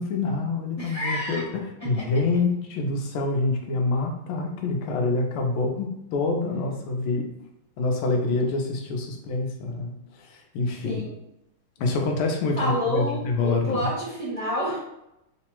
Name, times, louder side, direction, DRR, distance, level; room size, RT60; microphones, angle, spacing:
voice 1, 0.0-7.3 7.8-11.0 11.8-13.9, left 3 dB, 85° left, 2 dB, 1.6 m, -26 dB
voice 2, 0.8-1.4 1.9-2.0 10.8-11.1 12.6-14.8, equal, 25° right, -8 dB, 1.0 m, -28 dB
3.8 x 2.0 x 4.4 m, 0.84 s
omnidirectional pair, 2.3 m